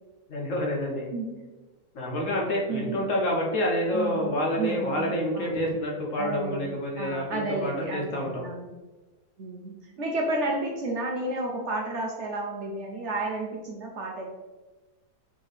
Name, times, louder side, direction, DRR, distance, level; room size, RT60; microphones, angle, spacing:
voice 1, 0.3-1.1 1.9-8.5, left 1 dB, 60° left, -2 dB, 1.2 m, -28 dB
voice 2, 1.1-1.5 2.7-3.0 3.9-5.7 6.2-8.7 9.4-14.4, right 2 dB, 60° right, 0 dB, 0.8 m, -32 dB
4.4 x 3.6 x 3.3 m, 1.2 s
omnidirectional pair, 1.6 m